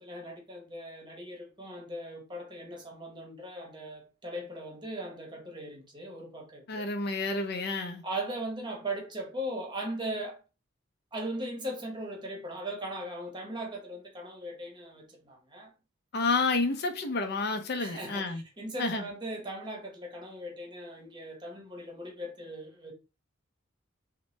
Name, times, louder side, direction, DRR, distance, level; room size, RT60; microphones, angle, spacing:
voice 1, 0.0-6.9 8.0-10.4 11.1-15.7 17.8-22.9, right 1 dB, 25° right, 0.9 m, -39 dB
voice 2, 6.7-8.0 16.1-18.4 18.8-19.1, left 3 dB, 55° left, 0.6 m, -30 dB
2.9 x 2.2 x 3.0 m
head